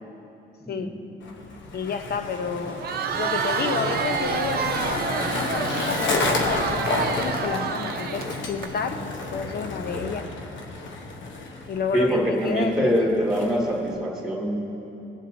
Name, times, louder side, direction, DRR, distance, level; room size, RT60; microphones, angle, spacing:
Skateboard, 1.2-13.9, left 3 dB, 70° left, 1.1 m, -31 dB
voice 1, 1.7-2.9 3.2-10.3 11.7-13.0, left 6 dB, 55° left, 7 dB, 0.8 m, -30 dB
Crowd, 2.7-8.7, right 6 dB, 50° right, 0.7 m, -28 dB
voice 2, 11.9-14.6, equal, ahead, -3 dB, 2.4 m, -24 dB
19.0 x 7.3 x 2.7 m, 2.9 s
cardioid pair, 90°, 20 cm